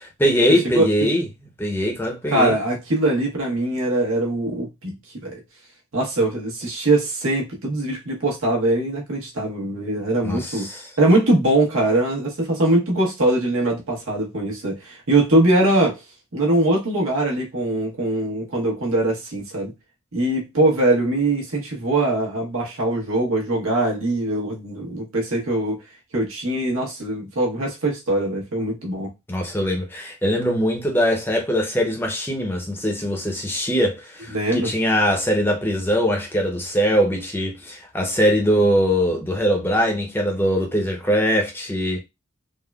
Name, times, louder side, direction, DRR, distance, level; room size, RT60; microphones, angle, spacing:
voice 1, 0.0-1.3 1.6-2.5 10.2-10.9 29.3-42.0, equal, 10° left, 0.6 m, -22 dB
voice 2, 2.3-5.4 5.9-10.7 11.0-16.0 16.3-19.7 20.1-25.8 26.1-29.1 34.3-34.7, right 2 dB, 75° right, 1.0 m, -22 dB
3.5 x 2.0 x 2.2 m
head